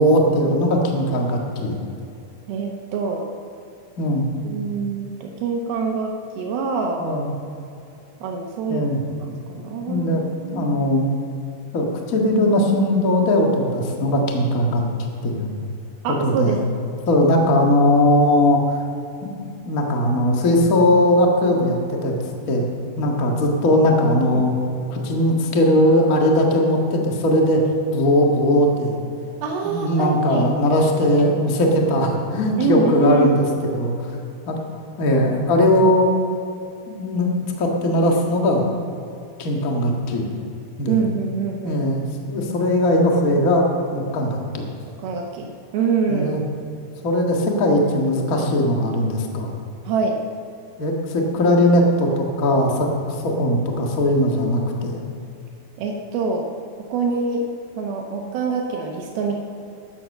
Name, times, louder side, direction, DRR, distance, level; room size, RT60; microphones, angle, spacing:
voice 1, 0.0-1.8 4.0-4.3 7.0-7.3 8.7-9.0 9.9-10.2 10.5-11.1 11.7-14.8 15.2-15.5 16.2-16.5 17.1-18.8 19.2-19.3 19.6-22.1 22.5-22.7 23.0-24.5 24.9-27.6 27.9-29.0 29.6-34.1 34.5-34.6 35.0-36.1 36.9-37.3 37.6-38.7 39.4-40.3 40.8-41.0 41.6-43.6 43.9-44.7 46.1-46.4 47.0-49.5 50.8-55.0, left 1 dB, 50° left, 1 dB, 1.0 m, -19 dB
voice 2, 2.5-3.3 4.4-7.1 8.2-8.9 9.2-10.7 16.0-16.6 24.3-24.4 29.4-30.5 32.6-33.3 40.9-41.8 45.0-46.3 49.9-50.2 55.8-56.5 56.9-57.4 57.8-59.4, right 5 dB, 75° right, 1 dB, 2.8 m, -25 dB
13.5 x 10.0 x 6.6 m, 2.6 s
omnidirectional pair, 4.4 m